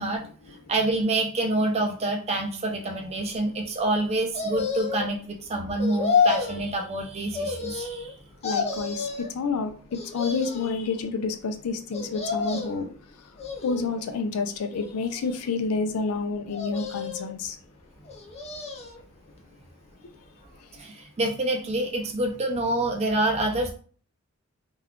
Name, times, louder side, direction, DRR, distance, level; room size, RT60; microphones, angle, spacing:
voice 1, 0.0-8.1 20.7-23.7, right 2 dB, 30° right, 0.4 m, -27 dB
sound 1, 4.3-5.1 5.8-6.6 7.3-8.1 8.4-9.3 9.9-10.7 11.9-12.8 13.4-14.1 14.7-15.5 16.5-17.3 18.1-19.0 19.4-19.5, left 5 dB, 30° left, 0.5 m, -29 dB
voice 2, 8.4-12.9 13.2-13.3 13.6-17.6, left 4 dB, 85° left, 0.4 m, -29 dB
2.3 x 2.2 x 3.5 m
head